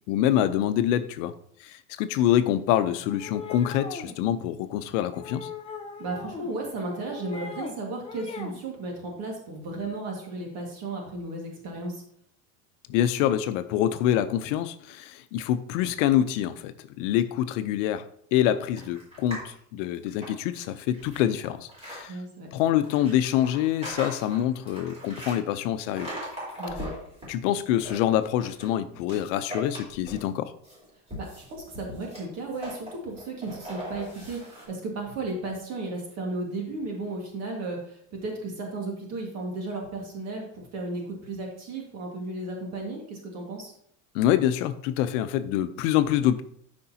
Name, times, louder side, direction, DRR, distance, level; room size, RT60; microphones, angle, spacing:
voice 1, 0.1-1.3 1.6-5.5 12.9-18.0 18.3-22.2 22.5-26.1 27.3-30.5 44.1-46.4, left 11 dB, 80° left, 11 dB, 0.8 m, -25 dB
sound 1, 3.1-4.2 5.1-6.5 6.8-7.7 8.0-8.6, left 5 dB, 15° left, 0.7 m, -39 dB
voice 2, 6.0-12.0 22.1-22.5 26.6-26.9 31.2-43.7, right 2 dB, 45° right, 0 dB, 1.9 m, -34 dB
sound 2, 18.8-19.5 19.9-22.0 22.8-25.4 25.9-27.3 27.6-28.7 29.1-30.3 30.6-34.7, equal, 15° right, 3.7 m, -39 dB
12.5 x 5.3 x 2.8 m, 0.66 s
cardioid pair, 165°, 37 cm